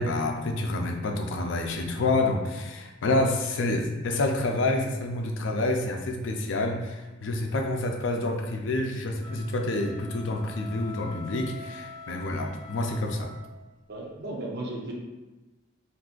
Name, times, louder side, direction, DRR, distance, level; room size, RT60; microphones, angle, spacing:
voice 1, 0.0-13.3, left 2 dB, 70° left, 3 dB, 0.5 m, -28 dB
sound 1, 9.2-13.7, left 4 dB, 20° left, 0.5 m, -45 dB
voice 2, 13.9-14.9, right 2 dB, 60° right, -1 dB, 0.6 m, -35 dB
2.6 x 2.4 x 3.7 m, 1.1 s
head